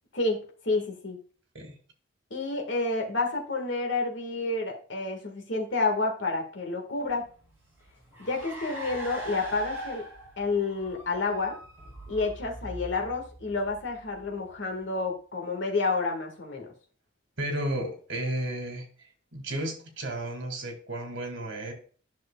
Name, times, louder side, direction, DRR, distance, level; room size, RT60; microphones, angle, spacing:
voice 1, 0.1-1.2 2.3-7.3 8.2-10.1 10.4-11.6 12.1-16.7, left 3 dB, 70° left, 1 dB, 1.6 m, -29 dB
Car, 7.1-14.8, equal, 10° right, 2.9 m, -42 dB
voice 2, 17.4-18.8 19.3-21.7, right 1 dB, 65° right, 3 dB, 2.1 m, -33 dB
11.0 x 6.1 x 2.2 m, 0.40 s
head